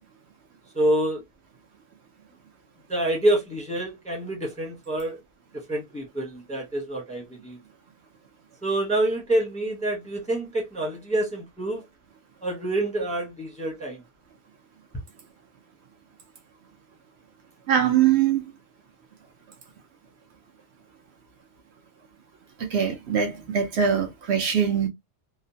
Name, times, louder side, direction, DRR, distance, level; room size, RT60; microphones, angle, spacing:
voice 1, 0.7-1.2 2.9-5.2 5.5-7.6 8.6-11.8 12.4-14.0, right 1 dB, 5° left, 0.7 m, -27 dB
voice 2, 17.7-18.4 22.7-24.9, right 8 dB, 65° right, 0.9 m, -22 dB
2.8 x 2.0 x 2.6 m
omnidirectional pair, 1.2 m